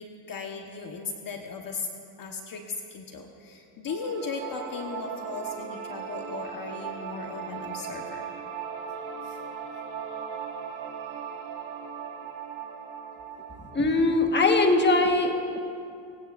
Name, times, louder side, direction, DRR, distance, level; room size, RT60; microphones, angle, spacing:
voice 1, 0.0-1.9 2.2-8.3 9.2-9.4, left 5 dB, 45° left, 2 dB, 1.3 m, -37 dB
sound 1, 3.9-14.9, right 7 dB, 65° right, 2.3 m, -38 dB
voice 2, 13.7-15.6, left 2 dB, 20° left, 4 dB, 1.5 m, -21 dB
23.0 x 17.0 x 2.6 m, 2.6 s
supercardioid pair, 90°, 48 cm